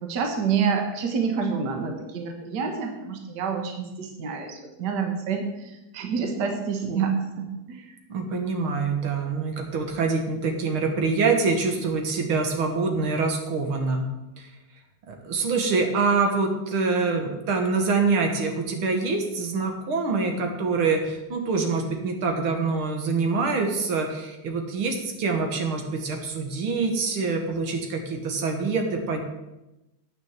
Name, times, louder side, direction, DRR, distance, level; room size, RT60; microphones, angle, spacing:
voice 1, 0.0-7.9, right 6 dB, 55° right, 4 dB, 1.7 m, -28 dB
voice 2, 8.1-14.1 14.4-14.5 15.1-29.2, right 4 dB, 75° right, 4 dB, 2.2 m, -25 dB
9.0 x 6.6 x 7.4 m, 0.98 s
omnidirectional pair, 2.3 m